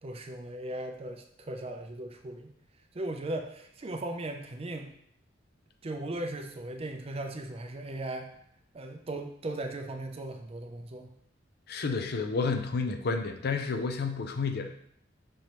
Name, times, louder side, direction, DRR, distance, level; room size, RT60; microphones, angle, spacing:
voice 1, 0.0-2.5 2.9-4.9 5.8-8.4 8.7-11.2, right 1 dB, 30° right, 5 dB, 0.5 m, -37 dB
voice 2, 11.7-14.7, left 4 dB, 55° left, 5 dB, 0.5 m, -30 dB
5.3 x 3.3 x 3.0 m, 0.68 s
head